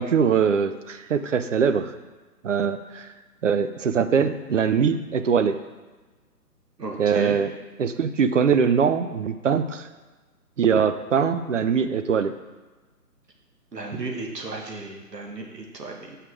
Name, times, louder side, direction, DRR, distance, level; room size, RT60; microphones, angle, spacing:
voice 1, 0.0-1.9 2.4-3.1 3.4-5.6 7.0-7.5 7.8-9.9 10.6-12.3, right 6 dB, 50° right, 10 dB, 0.6 m, -22 dB
voice 2, 6.8-7.4 13.7-16.2, right 3 dB, 90° right, 1 dB, 1.9 m, -34 dB
8.4 x 5.8 x 4.7 m, 1.3 s
hypercardioid pair, 155°, 48 cm